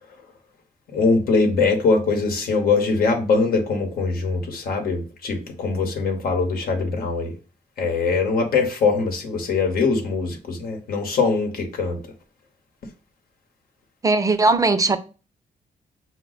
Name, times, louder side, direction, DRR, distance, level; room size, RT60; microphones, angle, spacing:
voice 1, 0.9-7.4 7.8-12.1, left 4 dB, 75° left, 0.9 m, -22 dB
voice 2, 14.0-15.0, right 3 dB, 20° right, 0.5 m, -18 dB
5.0 x 2.2 x 3.9 m
cardioid pair, 75°, 15 cm